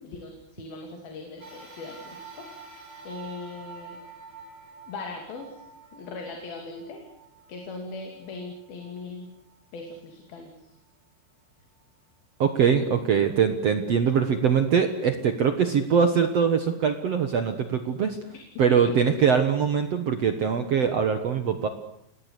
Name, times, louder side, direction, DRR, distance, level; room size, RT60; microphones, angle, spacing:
voice 1, 0.0-4.0 4.9-5.6 5.9-7.0 7.5-9.3 9.7-10.7 18.3-18.4 18.7-18.8, left 3 dB, 60° left, 3 dB, 4.5 m, -40 dB
sound 1, 1.4-10.0 10.6-10.7 11.8-11.9, right 4 dB, 10° right, 8.2 m, -48 dB
voice 2, 12.4-18.2 18.6-21.7, right 7 dB, 70° right, 7 dB, 1.5 m, -22 dB
28.5 x 19.0 x 8.4 m, 0.78 s
omnidirectional pair, 5.0 m